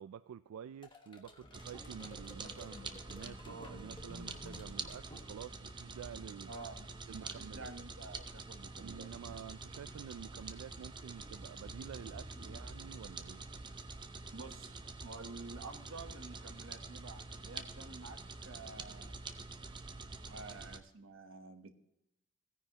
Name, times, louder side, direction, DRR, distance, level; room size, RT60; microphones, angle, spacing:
voice 1, 0.0-6.5 7.1-7.7 8.8-13.5, right 8 dB, 90° right, 0.3 m, -49 dB
sound 1, 0.8-5.7, left 2 dB, 20° left, 1.3 m, -53 dB
sound 2, 1.5-20.8, right 3 dB, 20° right, 0.6 m, -47 dB
voice 2, 6.5-9.3 14.3-19.2 20.2-21.7, right 3 dB, 70° right, 1.0 m, -50 dB
16.5 x 9.8 x 2.9 m
head